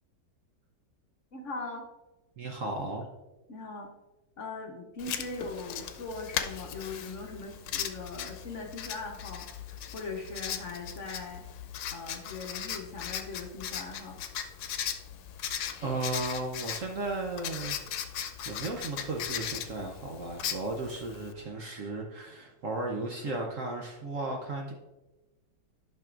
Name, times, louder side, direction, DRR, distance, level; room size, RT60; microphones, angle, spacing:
voice 1, 1.3-1.8 3.5-3.9 4.4-11.4 11.9-14.2, left 3 dB, 50° left, 1 dB, 1.0 m, -40 dB
voice 2, 2.4-3.1 15.8-24.7, right 2 dB, 55° right, 1 dB, 0.9 m, -35 dB
Writing, 5.0-21.3, left 9 dB, 80° left, 1.3 m, -38 dB
12.0 x 5.9 x 2.4 m, 1.1 s
omnidirectional pair, 2.0 m